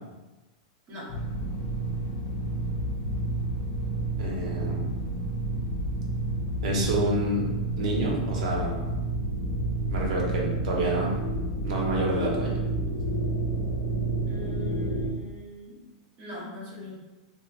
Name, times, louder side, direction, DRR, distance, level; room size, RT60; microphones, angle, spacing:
sound 1, 1.1-15.1, right 2 dB, 70° left, 0.5 m, -30 dB
voice 1, 4.2-4.9 6.6-7.5 7.8-8.8 9.9-11.1 11.6-12.6, right 1 dB, 70° right, -2 dB, 0.8 m, -28 dB
voice 2, 14.3-15.8 16.2-16.9, left 2 dB, 35° right, -5 dB, 1.0 m, -41 dB
3.0 x 2.0 x 2.5 m, 1.1 s
supercardioid pair, 145°, 4 cm